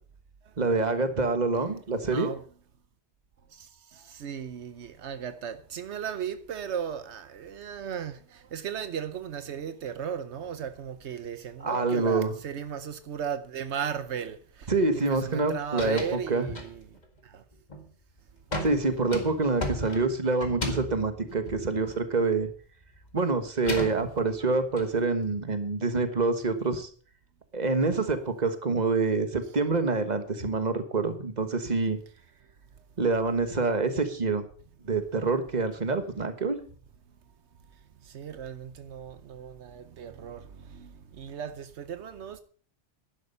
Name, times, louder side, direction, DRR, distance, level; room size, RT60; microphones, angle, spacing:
voice 1, 0.6-2.3 11.6-12.3 14.7-16.0 16.3-16.5 18.6-22.5 23.1-26.9 27.5-32.0 33.0-34.5 34.8-36.6, right 3 dB, 40° right, 1.5 m, -26 dB
voice 2, 2.1-2.4 4.1-8.2 8.5-14.4 14.9-16.8 38.1-40.4 40.8-40.9 41.2-42.4, right 8 dB, 80° right, 1.1 m, -36 dB
sound 1, 15.7-16.2 16.6-17.1 17.5-17.9 18.5-22.5 22.9-24.9, left 1 dB, 40° left, 2.0 m, -36 dB
11.5 x 10.5 x 5.5 m
omnidirectional pair, 1.1 m